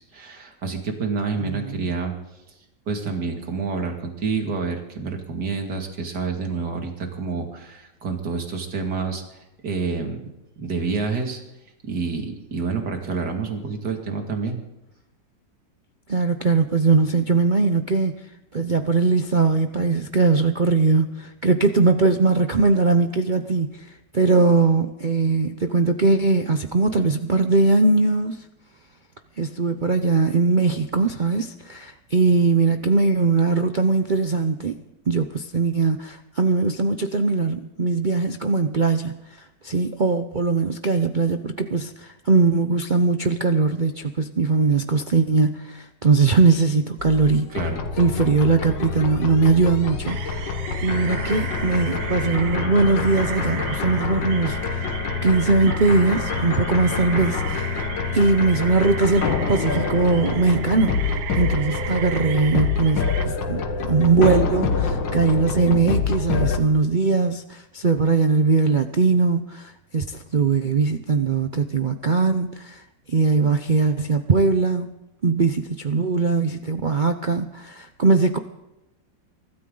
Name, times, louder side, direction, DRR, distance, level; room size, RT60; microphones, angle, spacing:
voice 1, 0.0-2.1 2.9-10.2 10.6-11.4 11.8-14.6 47.5-47.8, right 4 dB, 65° right, 3 dB, 2.9 m, -28 dB
voice 2, 1.4-1.9 16.1-18.2 18.5-28.4 29.4-47.6 48.0-50.5 50.8-54.8 55.2-57.9 58.1-72.8 73.1-74.9 75.2-78.4, right 4 dB, 45° right, 7 dB, 0.6 m, -20 dB
sound 1, 47.0-66.6, left 5 dB, 90° left, 2.1 m, -26 dB
sound 2, 50.1-63.3, right 10 dB, 85° right, 1.5 m, -36 dB
23.5 x 13.5 x 3.9 m, 0.93 s
omnidirectional pair, 1.9 m